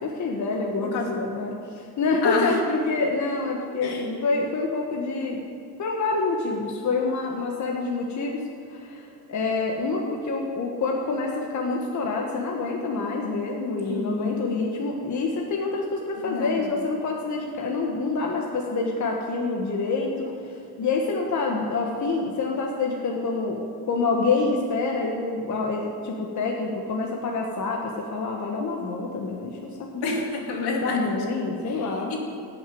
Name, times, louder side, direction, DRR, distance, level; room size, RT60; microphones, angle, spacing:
voice 1, 0.0-5.4 5.8-8.4 8.7-30.1 30.8-32.1, left 3 dB, 45° left, 0 dB, 1.4 m, -27 dB
voice 2, 0.8-1.1 2.2-2.6 3.8-4.0 13.8-14.4 16.2-16.6 30.0-31.2 31.7-32.2, left 4 dB, 75° left, 0 dB, 2.7 m, -29 dB
14.0 x 6.6 x 9.2 m, 2.6 s
cardioid pair, 125°, 39 cm